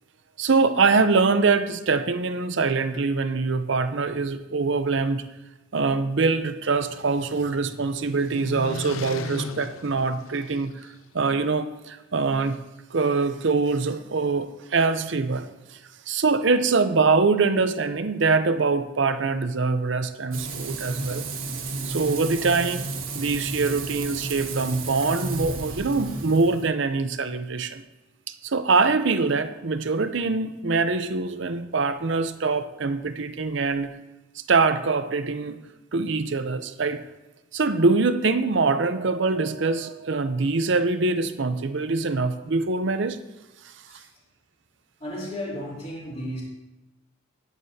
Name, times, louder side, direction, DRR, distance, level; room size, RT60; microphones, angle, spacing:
voice 1, 0.4-5.2 5.7-12.6 12.9-15.8 16.1-21.3 21.8-27.8 28.4-33.9 34.5-35.6 35.9-37.0 37.5-43.2, right 4 dB, 60° right, 10 dB, 0.6 m, -24 dB
sound 1, 6.3-11.0, left 3 dB, 80° left, 0.6 m, -38 dB
Frying (food), 20.3-26.7, right 3 dB, 80° right, 1.5 m, -32 dB
voice 2, 45.0-46.4, equal, 30° left, -6 dB, 3.3 m, -34 dB
18.0 x 8.3 x 2.8 m, 1.0 s
head